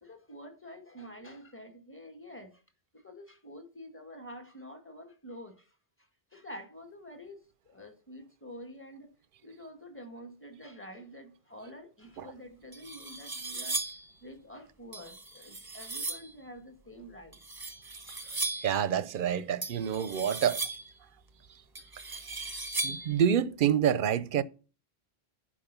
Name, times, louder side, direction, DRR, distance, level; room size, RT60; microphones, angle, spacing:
voice 1, 0.0-2.6 2.9-9.1 9.4-13.8 14.2-17.4, equal, 10° left, 1.8 m, -48 dB
sound 1, 12.2-12.3 12.7-14.1 14.9-16.3 17.3-18.8 19.6-21.0 21.7-23.2, right 3 dB, 20° right, 1.0 m, -37 dB
voice 2, 18.6-20.6 22.8-24.4, right 8 dB, 60° right, 0.7 m, -27 dB
11.0 x 5.1 x 6.8 m
omnidirectional pair, 1.1 m